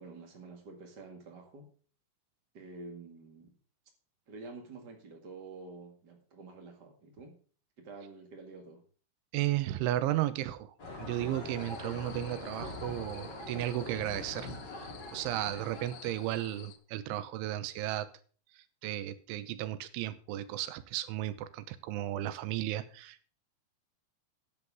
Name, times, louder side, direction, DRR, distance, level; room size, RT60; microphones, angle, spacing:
voice 1, 0.0-1.7 2.5-3.6 4.3-7.4 7.8-8.8, right 3 dB, 60° right, 2 dB, 1.0 m, -48 dB
voice 2, 9.3-14.5 15.1-18.1 18.8-23.3, right 14 dB, 80° right, 13 dB, 3.3 m, -34 dB
sound 1, 10.8-16.7, left 2 dB, 25° left, 3.1 m, -43 dB
sound 2, 11.6-16.8, left 12 dB, 80° left, 3.6 m, -54 dB
13.5 x 10.0 x 3.6 m, 0.42 s
omnidirectional pair, 5.7 m